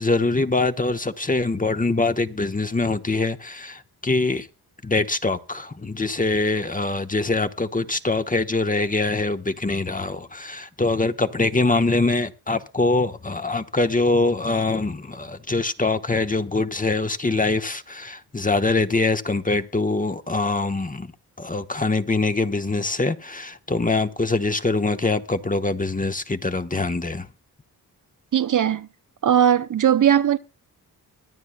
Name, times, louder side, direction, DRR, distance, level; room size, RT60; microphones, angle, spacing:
voice 1, 0.0-4.5 4.8-21.1 21.4-27.3, left 3 dB, 20° left, 1.1 m, -23 dB
voice 2, 28.3-28.9 29.2-30.4, right 9 dB, 50° right, 0.7 m, -18 dB
23.5 x 9.4 x 2.3 m
cardioid pair, 60°, 40 cm